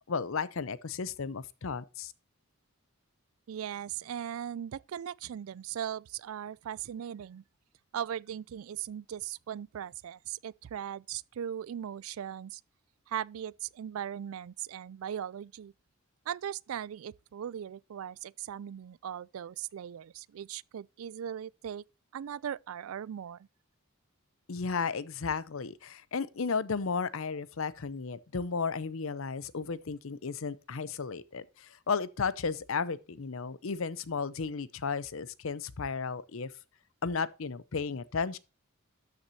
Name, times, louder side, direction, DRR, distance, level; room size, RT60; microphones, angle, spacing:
voice 1, 0.1-2.1 24.5-36.5 37.0-38.4, left 5 dB, 65° left, 0.6 m, -34 dB
voice 2, 3.5-7.4 7.9-12.6 13.1-15.7 16.3-21.8 22.1-23.5, right 9 dB, 70° right, 0.3 m, -39 dB
13.0 x 6.1 x 2.7 m
head